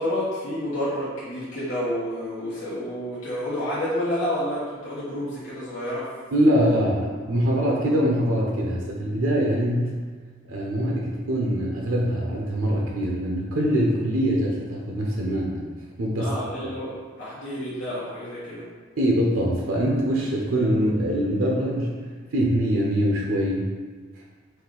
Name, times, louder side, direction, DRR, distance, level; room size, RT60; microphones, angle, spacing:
voice 1, 0.0-6.1 6.5-6.8 16.2-18.6, left 1 dB, 65° left, -11 dB, 1.1 m, -29 dB
voice 2, 6.3-9.9 10.5-15.6 16.0-16.4 19.0-22.0 22.3-23.7, equal, 90° right, -2 dB, 0.6 m, -23 dB
4.3 x 2.4 x 3.8 m, 1.5 s
head